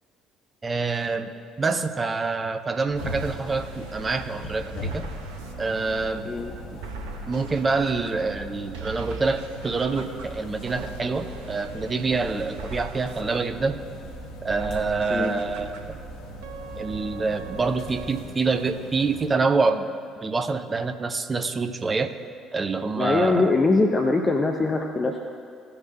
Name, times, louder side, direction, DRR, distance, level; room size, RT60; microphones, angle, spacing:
voice 1, 0.6-1.3 1.6-5.0 5.6-6.3 6.7-6.8 7.3-13.8 14.4-15.8 16.8-19.9 20.2-22.1 22.5-23.5, right 4 dB, 30° right, 8 dB, 0.8 m, -26 dB
sound 1, 2.9-19.3, left 2 dB, 60° left, 1.1 m, -42 dB
sound 2, 2.9-18.2, right 4 dB, 70° right, 0.9 m, -39 dB
voice 2, 22.9-25.3, left 3 dB, 25° left, 3 dB, 0.8 m, -22 dB
17.0 x 6.8 x 2.9 m, 2.2 s
figure-of-eight pair, 50°, 0 cm